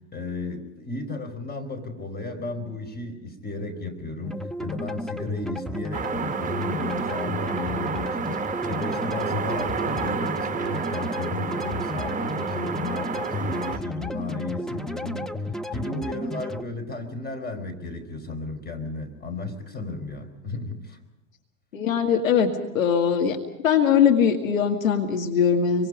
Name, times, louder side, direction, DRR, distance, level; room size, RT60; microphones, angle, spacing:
voice 1, 0.0-15.3 15.7-21.0, left 3 dB, 25° left, 7 dB, 4.8 m, -34 dB
sound 1, 4.2-16.6, left 1 dB, ahead, 1.0 m, -33 dB
sound 2, 5.9-13.8, right 6 dB, 20° right, 1.2 m, -30 dB
voice 2, 21.7-23.4 23.6-25.9, left 7 dB, 80° left, 4 dB, 2.1 m, -21 dB
26.5 x 24.5 x 5.1 m, 0.98 s
hypercardioid pair, 85°, 40 cm